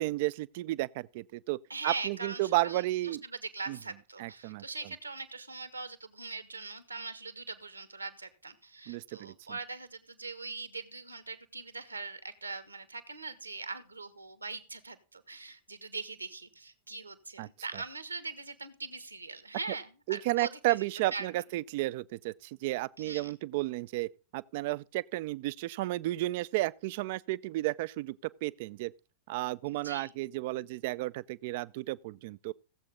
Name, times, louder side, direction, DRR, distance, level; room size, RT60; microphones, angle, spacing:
voice 1, 0.0-1.6 1.8-3.2 3.7-3.8 4.2-4.6 8.9-9.3 17.4-17.5 20.1-28.2 28.4-28.9 29.3-32.5, right 18 dB, 50° right, 0.5 m, -32 dB
voice 2, 1.7-20.8 21.1-21.3 23.0-23.3 29.6-30.1, right 3 dB, 85° right, 1.6 m, -41 dB
17.0 x 7.8 x 3.7 m
figure-of-eight pair, 90°, 0 cm